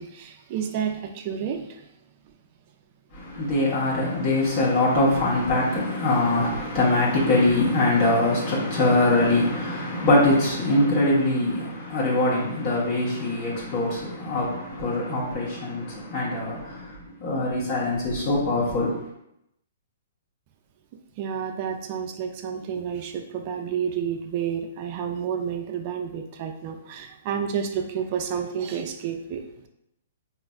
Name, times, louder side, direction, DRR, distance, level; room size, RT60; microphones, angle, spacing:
voice 1, 0.0-1.6 21.2-29.4, right 8 dB, 45° right, 0.4 m, -30 dB
voice 2, 3.1-18.9, left 2 dB, 45° left, 1.0 m, -23 dB
4.0 x 2.4 x 2.3 m
hypercardioid pair, 125°, 0 cm